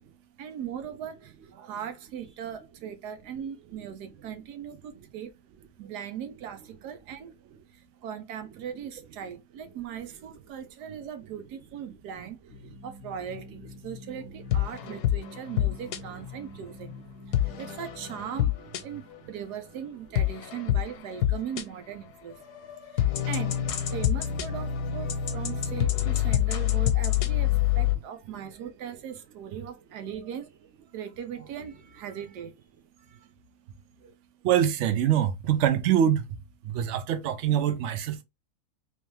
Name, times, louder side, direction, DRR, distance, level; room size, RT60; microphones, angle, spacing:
voice 1, 0.4-5.3 5.8-7.3 7.7-12.4 12.8-17.0 17.4-22.4 22.9-30.5 30.9-32.5 33.1-33.3 34.0-34.1, right 8 dB, 90° right, 1.3 m, -39 dB
sound 1, 12.5-18.5, left 3 dB, 65° left, 0.9 m, -46 dB
sound 2, 14.5-16.0 17.3-19.2 20.1-21.6 22.3-28.0, left 12 dB, 85° left, 1.2 m, -26 dB
voice 2, 34.4-36.3 36.6-38.2, right 10 dB, 60° right, 0.8 m, -24 dB
3.2 x 3.1 x 3.2 m
omnidirectional pair, 1.7 m